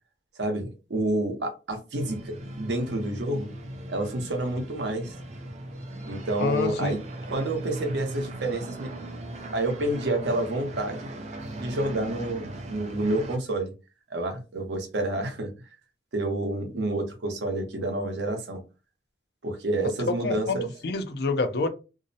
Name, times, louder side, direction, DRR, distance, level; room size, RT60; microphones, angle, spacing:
voice 1, 0.4-3.5 3.9-5.2 6.0-7.0 7.3-8.9 9.5-11.1 11.5-13.7 14.1-15.5 16.1-18.6 19.4-20.7, right 1 dB, 80° right, 0.7 m, -29 dB
sound 1, 1.9-13.4, right 1 dB, 40° right, 0.4 m, -38 dB
voice 2, 6.4-7.0 20.2-20.6 20.8-21.7, left 3 dB, 60° left, 0.5 m, -27 dB
2.5 x 2.0 x 2.6 m
head